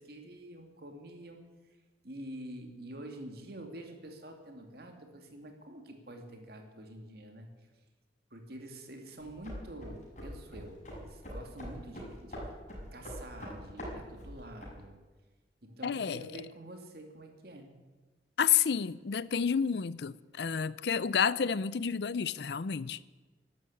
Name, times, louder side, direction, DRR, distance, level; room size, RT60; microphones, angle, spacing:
voice 1, 0.0-1.4 2.0-7.5 8.3-12.5 12.9-15.0 15.6-17.8, right 1 dB, 60° right, 2.5 m, -47 dB
sound 1, 9.2-14.8, equal, 45° left, 6.2 m, -44 dB
voice 2, 15.8-16.2 18.4-23.0, left 7 dB, 65° left, 0.5 m, -30 dB
12.5 x 12.0 x 8.6 m
head